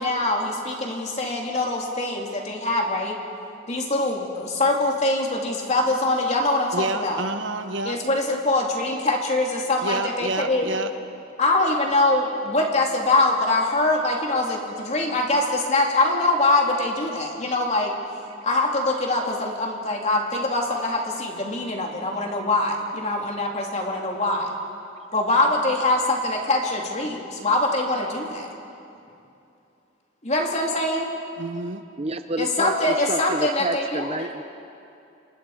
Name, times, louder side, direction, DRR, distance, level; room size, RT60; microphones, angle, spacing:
voice 1, 0.0-3.2 3.7-7.2 7.8-10.6 11.4-17.9 18.4-24.5 25.1-28.5 30.2-31.1 32.4-34.1, left 2 dB, 35° left, 0 dB, 3.2 m, -23 dB
voice 2, 6.7-8.0 9.8-10.9 31.4-31.8, right 2 dB, 65° right, 8 dB, 1.3 m, -28 dB
voice 3, 32.0-34.4, right 2 dB, 30° right, 9 dB, 0.6 m, -30 dB
30.0 x 26.5 x 5.1 m, 2.7 s
head